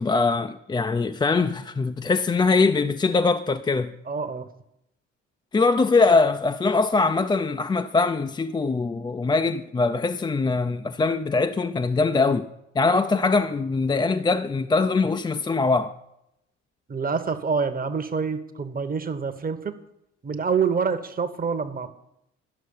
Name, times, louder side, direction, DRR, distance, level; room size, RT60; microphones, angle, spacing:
voice 1, 0.0-3.9 5.5-12.5 12.8-16.0, left 3 dB, 15° left, 0.4 m, -22 dB
voice 2, 4.1-4.5 16.9-19.7 20.2-21.9, right 5 dB, 25° right, 1.0 m, -26 dB
11.5 x 6.3 x 5.4 m
hypercardioid pair, 50°, 35 cm